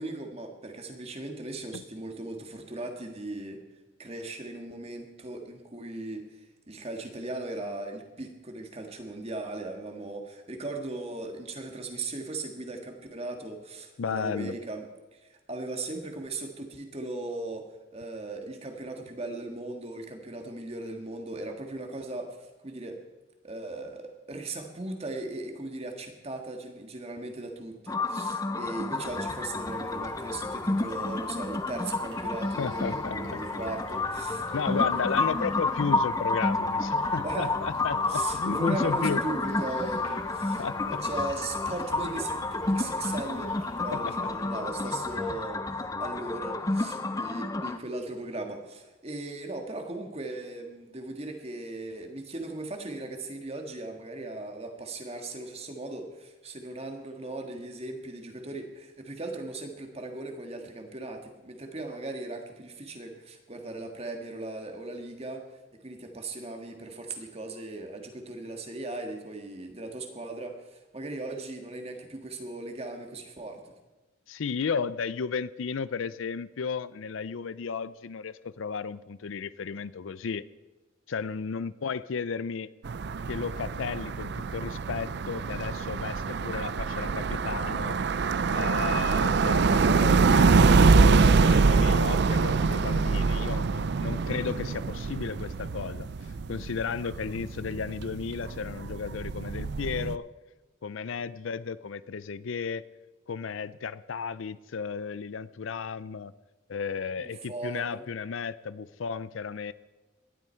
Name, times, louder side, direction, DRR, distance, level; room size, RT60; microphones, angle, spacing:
voice 1, 0.0-3.6 4.0-23.0 23.4-35.4 37.2-37.5 38.1-45.6 46.0-65.5 65.8-73.7 107.2-108.0, right 2 dB, 30° right, 4 dB, 1.7 m, -38 dB
voice 2, 14.0-14.5 32.6-33.4 34.5-39.2 40.6-41.0 43.9-44.3 74.3-80.5 81.1-82.7 83.3-88.0 88.5-96.1 96.5-100.3 100.8-102.8 103.3-106.3 106.7-109.7, left 5 dB, 75° left, 17 dB, 0.5 m, -34 dB
sound 1, 27.9-47.8, left 3 dB, 15° left, 0.5 m, -30 dB
sound 2, 29.0-47.2, right 1 dB, 75° right, 4.6 m, -51 dB
sound 3, 82.9-100.2, right 4 dB, 55° right, 0.4 m, -25 dB
18.5 x 12.0 x 4.5 m, 1.1 s
head